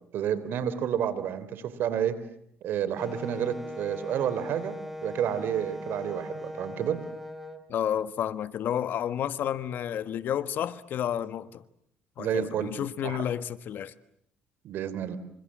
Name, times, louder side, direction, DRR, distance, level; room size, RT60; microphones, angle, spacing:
voice 1, 0.1-2.2 2.6-7.0 12.2-12.7 13.0-13.2 14.6-15.2, right 9 dB, 65° right, 15 dB, 3.4 m, -30 dB
Wind instrument woodwind instrument, 3.0-7.6, left 1 dB, 5° right, 3.6 m, -39 dB
voice 2, 7.7-11.6 12.2-13.9, left 10 dB, 60° left, 14 dB, 1.4 m, -31 dB
28.0 x 26.5 x 7.5 m, 0.71 s
cardioid pair, 100°, 4 cm